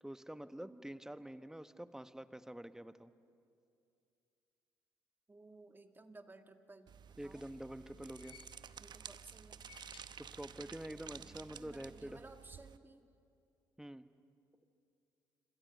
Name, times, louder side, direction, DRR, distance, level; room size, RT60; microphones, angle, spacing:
voice 1, 0.0-3.1 7.2-8.4 10.2-12.2 13.8-14.1, right 1 dB, 5° right, 11 dB, 1.2 m, -47 dB
voice 2, 0.6-0.9 5.3-7.4 8.8-9.6 11.1-13.1, right 2 dB, 20° right, 6 dB, 2.0 m, -57 dB
sound 1, 6.9-12.8, right 7 dB, 50° right, 0.9 m, -53 dB
sound 2, 7.0-9.0 9.4-10.9 11.1-11.2 12.3-12.4, left 9 dB, 65° left, 1.7 m, -63 dB
26.5 x 26.5 x 6.7 m, 2.5 s
hypercardioid pair, 50°, 10 cm